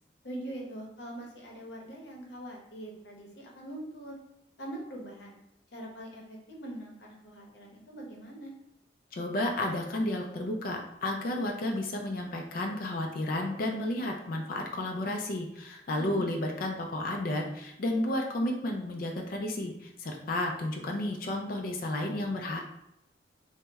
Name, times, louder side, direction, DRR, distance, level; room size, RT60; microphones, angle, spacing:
voice 1, 0.2-4.2 4.6-5.4 5.7-8.5 16.0-16.3, right 1 dB, 75° left, -1 dB, 0.8 m, -42 dB
voice 2, 9.1-22.6, left 1 dB, 50° left, 2 dB, 0.4 m, -32 dB
3.0 x 2.1 x 3.4 m, 0.84 s
head